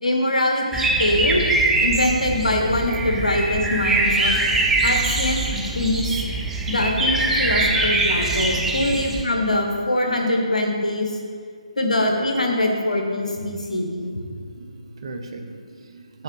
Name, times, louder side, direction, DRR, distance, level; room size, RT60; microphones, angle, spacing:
voice 1, 0.0-1.4 1.8-4.3 4.8-6.1 6.7-11.1 11.8-14.2, left 1 dB, 75° left, 2 dB, 1.6 m, -23 dB
sound 1, 0.7-9.2, right 2 dB, 5° right, 0.5 m, -22 dB
voice 2, 13.9-16.2, right 3 dB, 50° right, 5 dB, 1.0 m, -39 dB
7.8 x 7.0 x 5.5 m, 2.1 s
figure-of-eight pair, 150°, 4 cm